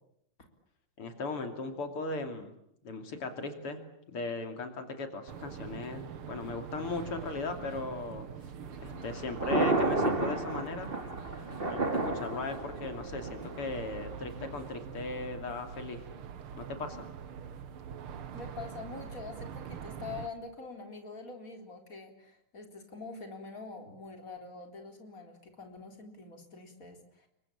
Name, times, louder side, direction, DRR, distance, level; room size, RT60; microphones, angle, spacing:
voice 1, 1.0-2.5 2.8-3.8 4.1-8.3 8.8-10.9 11.7-16.1 16.6-17.1, left 3 dB, 90° left, 7 dB, 3.7 m, -37 dB
sound 1, 5.3-20.3, right 8 dB, 80° right, 2.2 m, -44 dB
Thunder, 8.6-14.7, right 2 dB, 25° right, 2.9 m, -32 dB
voice 2, 18.3-27.3, left 4 dB, 40° left, 4 dB, 4.4 m, -45 dB
29.0 x 23.5 x 8.7 m, 0.75 s
omnidirectional pair, 2.4 m